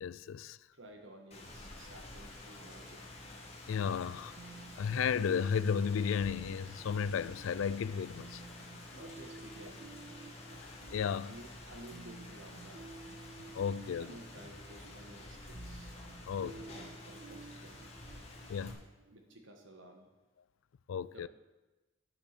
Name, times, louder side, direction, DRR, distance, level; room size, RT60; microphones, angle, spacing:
voice 1, 0.0-0.6 3.7-4.3 4.8-8.4 10.6-11.3 13.5-14.1 16.3-16.6 18.5-18.9 20.9-21.3, left 7 dB, 75° left, 0.3 m, -34 dB
voice 2, 0.7-3.3 8.9-9.9 11.3-12.9 13.9-16.0 16.4-17.8 19.1-20.1 21.0-21.3, right 1 dB, 70° right, 1.7 m, -54 dB
Rain, 1.3-18.7, left 2 dB, 30° left, 1.7 m, -50 dB
sound 1, 4.4-20.0, right 3 dB, 40° right, 0.4 m, -54 dB
9.7 x 7.3 x 6.9 m
head